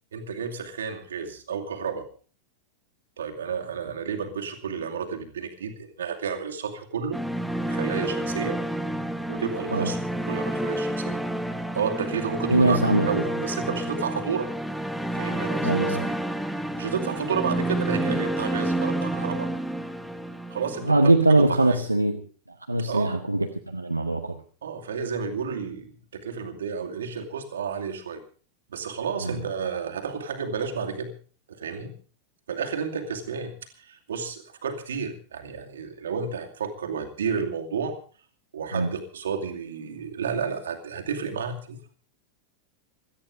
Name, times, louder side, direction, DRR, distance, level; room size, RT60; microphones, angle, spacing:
voice 1, 0.1-2.1 3.2-7.2 7.7-8.6 9.3-10.0 10.3-11.2 11.7-12.8 13.0-14.5 15.1-16.1 16.7-19.5 20.5-21.8 22.9-23.2 24.6-28.2 28.7-31.1 31.5-31.9 32.5-38.0 38.5-41.8, right 6 dB, 65° right, 3 dB, 2.4 m, -31 dB
sound 1, 7.1-21.2, right 1 dB, ahead, 1.3 m, -29 dB
voice 2, 12.5-13.1 15.6-16.1 20.8-22.2 22.7-24.4 29.2-29.4 38.7-38.9, right 2 dB, 85° right, 3 dB, 1.0 m, -22 dB
17.5 x 13.5 x 4.9 m, 0.39 s
figure-of-eight pair, 90°, 0 cm